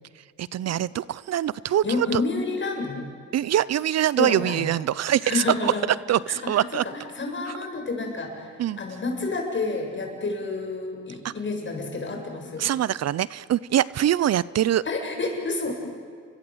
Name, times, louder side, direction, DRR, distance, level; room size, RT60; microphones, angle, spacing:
voice 1, 0.4-2.2 3.3-5.7 6.1-6.8 7.5-7.6 8.6-8.8 11.2-11.3 12.6-14.8, right 11 dB, 60° right, 20 dB, 0.6 m, -24 dB
voice 2, 1.8-3.1 4.2-4.7 5.2-5.9 6.3-12.7 14.9-15.7, left 3 dB, 40° left, 2 dB, 7.5 m, -29 dB
29.0 x 24.0 x 8.0 m, 2.1 s
cardioid pair, 90°, 30 cm